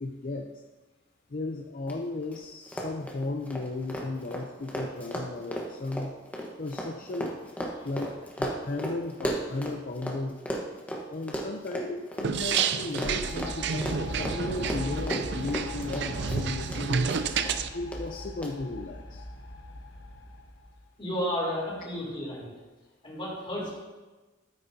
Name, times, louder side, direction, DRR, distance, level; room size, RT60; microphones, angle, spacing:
voice 1, 0.0-0.5 1.3-6.1 6.6-7.3 7.8-10.4 11.1-17.1 17.7-19.2, left 2 dB, 50° left, 3 dB, 0.6 m, -35 dB
Run, 1.9-2.0 2.2-2.4 2.7-10.2 10.5-16.8 17.1-17.6 17.9-18.0 18.4-18.5, equal, 10° left, 1.1 m, -35 dB
sound 1, 12.2-17.7, right 6 dB, 65° right, 0.4 m, -30 dB
sound 2, 13.1-20.8, left 1 dB, 80° left, 1.3 m, -40 dB
voice 2, 21.0-22.4 23.0-23.7, equal, 30° left, -5 dB, 3.4 m, -32 dB
13.0 x 9.0 x 2.7 m, 1.2 s
head